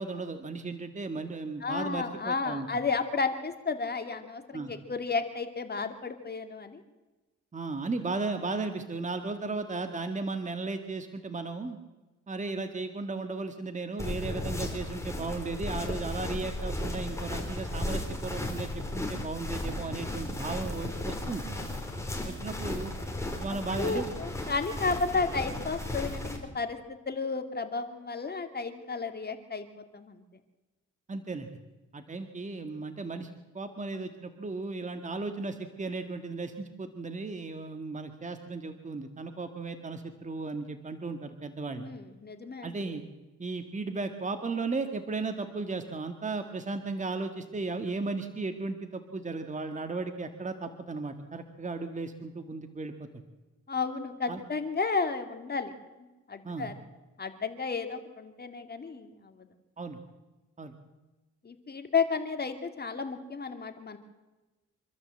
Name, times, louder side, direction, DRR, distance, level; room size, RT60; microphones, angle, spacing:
voice 1, 0.0-2.7 4.5-4.7 7.5-11.8 12.3-21.5 22.2-22.9 23.4-24.1 31.1-31.5 31.9-33.3 33.5-41.9 42.6-43.0 43.4-53.1 54.3-54.4 56.4-56.7 59.8-60.0 60.6-60.7, right 3 dB, 25° right, 7 dB, 1.9 m, -35 dB
voice 2, 1.6-6.8 22.5-22.8 23.5-29.7 29.9-30.2 41.7-42.7 53.7-55.7 56.0-56.7 57.2-59.5 61.4-64.0, left 4 dB, 35° left, 7 dB, 2.5 m, -33 dB
sound 1, 14.0-26.4, left 1 dB, 10° left, 4.6 m, -35 dB
26.0 x 13.0 x 7.8 m, 1.1 s
cardioid pair, 90°, 30 cm